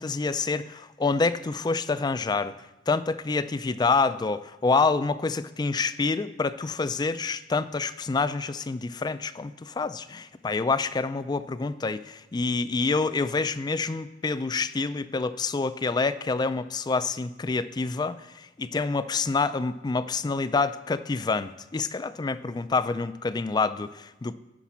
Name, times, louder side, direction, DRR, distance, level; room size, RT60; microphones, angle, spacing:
voice 1, 0.0-2.5 2.9-24.3, left 4 dB, 25° left, 13 dB, 0.3 m, -27 dB
9.9 x 5.9 x 7.2 m, 1.0 s
head